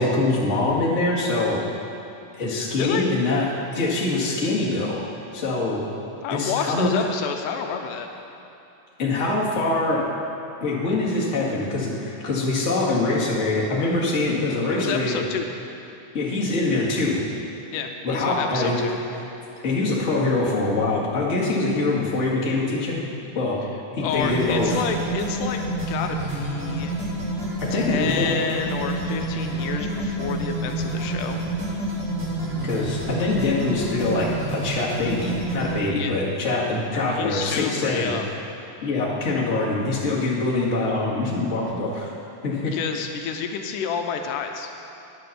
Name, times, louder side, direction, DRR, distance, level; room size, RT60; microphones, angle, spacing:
voice 1, 0.0-1.6 2.3-3.5 3.7-5.0 5.3-5.8 6.3-7.0 9.0-10.0 10.6-15.2 16.1-17.2 18.0-18.8 19.6-23.0 23.3-23.6 23.9-24.8 27.6-28.4 32.6-38.1 38.8-42.1 42.4-42.7, left 2 dB, 25° left, -6 dB, 1.8 m, -24 dB
voice 2, 6.2-8.1 14.7-15.5 17.7-19.0 24.0-26.9 27.7-31.4 35.9-36.2 36.9-38.3 42.7-44.7, left 6 dB, 85° left, 5 dB, 2.2 m, -29 dB
sound 1, 24.0-35.7, equal, 45° right, 3.4 m, -28 dB
10.0 x 8.6 x 6.7 m, 2.8 s
omnidirectional pair, 3.6 m